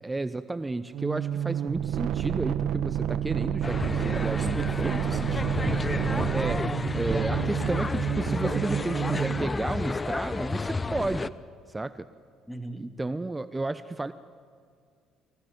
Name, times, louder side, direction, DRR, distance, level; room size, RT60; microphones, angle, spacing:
voice 1, 0.0-4.9 5.9-6.6 6.9-11.3 11.7-12.1 12.8-14.1, right 2 dB, 20° right, 14 dB, 0.8 m, -32 dB
sound 1, 0.9-9.5, right 10 dB, 65° right, 0.9 m, -29 dB
sound 2, 3.6-11.3, left 3 dB, 25° left, 0.7 m, -31 dB
voice 2, 4.0-5.7 12.5-12.9, right 1 dB, 5° left, 7 dB, 2.5 m, -39 dB
26.5 x 15.5 x 9.5 m, 2.2 s
supercardioid pair, 65°, 0 cm